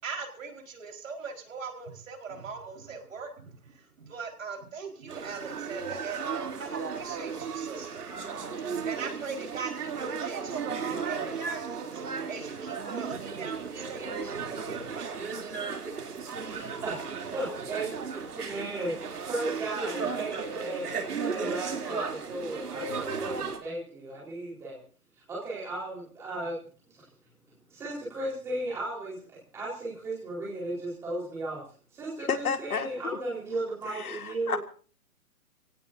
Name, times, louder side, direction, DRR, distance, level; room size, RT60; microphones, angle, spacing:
voice 1, 0.0-8.0 8.6-15.1, right 5 dB, 60° right, 2 dB, 4.6 m, -40 dB
sound 1, 5.1-23.6, right 5 dB, 90° right, 3.2 m, -35 dB
voice 2, 16.5-17.9 18.3-24.8 25.3-26.6 26.9-27.0 27.7-31.6 31.9-34.6, right 2 dB, 5° right, -5 dB, 4.3 m, -35 dB
voice 3, 32.3-32.9 33.9-34.6, left 6 dB, 70° left, 8 dB, 2.1 m, -31 dB
27.5 x 17.5 x 2.7 m, 0.40 s
hypercardioid pair, 180°, 45 cm